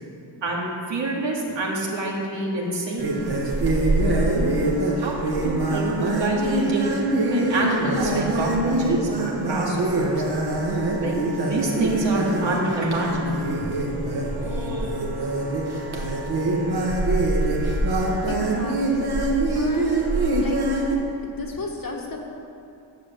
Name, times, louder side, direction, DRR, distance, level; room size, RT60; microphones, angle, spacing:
voice 1, 0.4-3.3 5.0-6.9 7.3-10.2 11.0-13.5 14.3-14.9, right 2 dB, 85° right, -2 dB, 2.1 m, -27 dB
sound 1, 3.0-20.9, right 2 dB, 60° right, 1.7 m, -24 dB
voice 2, 18.3-19.1 19.5-20.0 20.4-20.6 21.2-22.2, left 3 dB, 50° left, 0 dB, 1.5 m, -34 dB
10.0 x 7.4 x 6.9 m, 2.5 s
wide cardioid pair, 165°, 44 cm